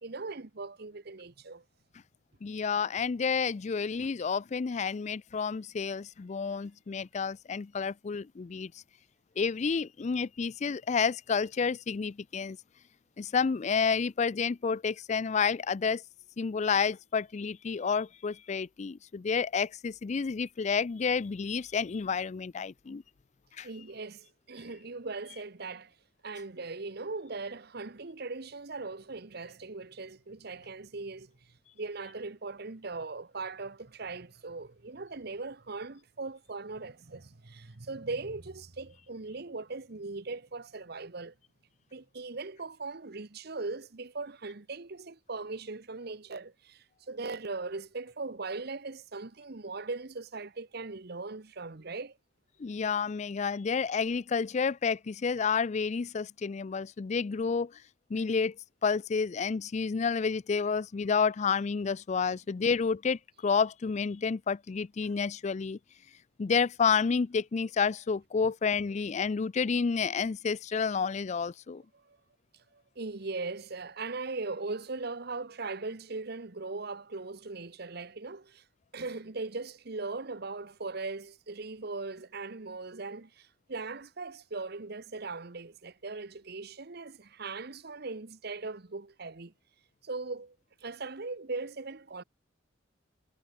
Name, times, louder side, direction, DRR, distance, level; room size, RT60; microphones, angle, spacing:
voice 1, 0.0-1.6 23.6-25.9 26.2-31.3 31.7-41.3 41.9-52.2 62.3-62.4 71.9-72.2 72.7-78.6 78.9-89.5 90.0-90.6 90.8-92.2, right 3 dB, 55° right, 1.1 m, -39 dB
voice 2, 2.4-8.7 9.4-12.6 13.2-16.0 16.4-23.0 23.6-23.7 52.6-57.7 58.1-58.5 58.8-65.8 66.4-71.8, left 5 dB, 35° left, 0.4 m, -30 dB
head